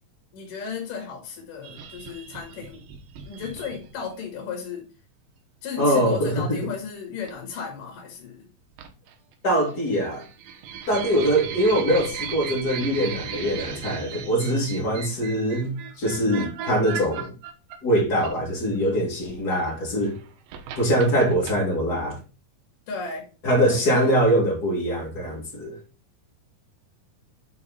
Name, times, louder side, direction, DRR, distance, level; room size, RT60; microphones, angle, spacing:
voice 1, 0.3-2.8 3.2-4.9 5.6-8.5 22.9-23.3 23.6-24.1, left 5 dB, 70° left, 3.3 m, -34 dB
sound 1, 1.6-4.3 5.9-6.1 7.3-7.6 8.8-9.3 9.7-18.8 19.8-21.5, right 7 dB, 85° right, 2.8 m, -37 dB
voice 2, 5.8-6.7 9.4-10.3 10.9-17.3 17.8-20.2 20.8-22.2 23.4-25.8, equal, 30° left, 2.5 m, -23 dB
7.8 x 4.6 x 4.1 m
omnidirectional pair, 4.1 m